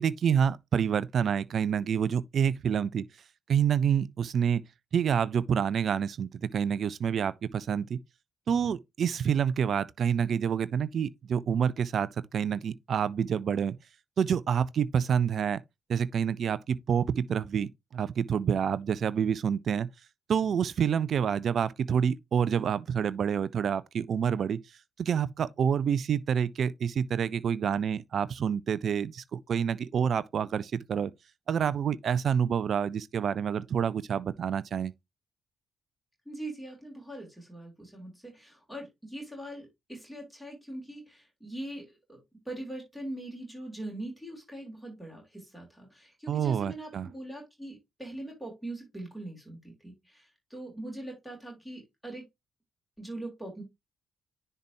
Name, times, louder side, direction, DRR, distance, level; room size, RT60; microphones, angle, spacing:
voice 1, 0.0-3.1 3.5-4.6 4.9-8.0 8.5-13.8 14.2-15.6 15.9-19.9 20.3-24.6 25.0-31.1 31.5-34.9 46.3-47.1, right 7 dB, 50° right, 0.4 m, -28 dB
voice 2, 36.2-52.3 53.0-53.6, right 1 dB, ahead, 3.4 m, -42 dB
10.0 x 3.4 x 3.0 m
figure-of-eight pair, 40°, 0 cm